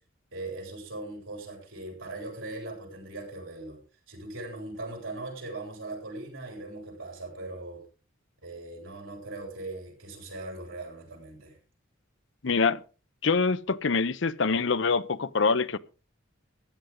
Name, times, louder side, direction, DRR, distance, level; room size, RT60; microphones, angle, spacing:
voice 1, 0.3-3.8 4.1-7.8 8.4-11.6, right 2 dB, 75° right, 7.7 m, -39 dB
voice 2, 12.4-12.8 13.2-15.8, left 4 dB, 60° left, 0.7 m, -25 dB
15.5 x 11.5 x 3.8 m
head